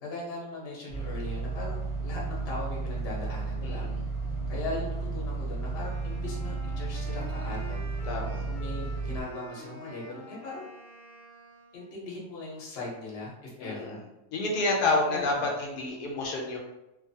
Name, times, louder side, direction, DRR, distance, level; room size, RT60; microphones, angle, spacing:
voice 1, 0.0-3.8 4.5-7.8 8.5-10.7 11.7-14.0 15.0-15.2, left 2 dB, 50° left, -4 dB, 0.9 m, -39 dB
sound 1, 0.9-9.2, right 4 dB, 30° right, 0.5 m, -33 dB
voice 2, 3.6-4.0 8.1-8.4 13.6-14.0 14.3-16.6, left 2 dB, 80° left, -1 dB, 1.1 m, -29 dB
Wind instrument woodwind instrument, 5.7-11.9, right 1 dB, 10° left, 1.0 m, -47 dB
2.9 x 2.4 x 2.6 m, 0.94 s
omnidirectional pair, 1.7 m